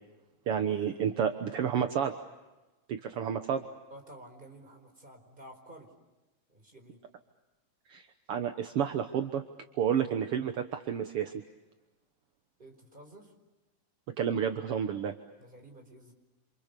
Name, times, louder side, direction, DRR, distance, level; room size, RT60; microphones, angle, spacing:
voice 1, 0.5-2.1 2.9-3.6 7.9-9.4 9.8-11.4 14.2-15.1, right 8 dB, 60° right, 6 dB, 1.6 m, -30 dB
voice 2, 3.9-5.9 6.5-7.0 12.6-13.3 15.4-16.1, right 1 dB, 15° right, 5 dB, 4.7 m, -51 dB
29.0 x 28.0 x 6.8 m, 1.1 s
omnidirectional pair, 3.9 m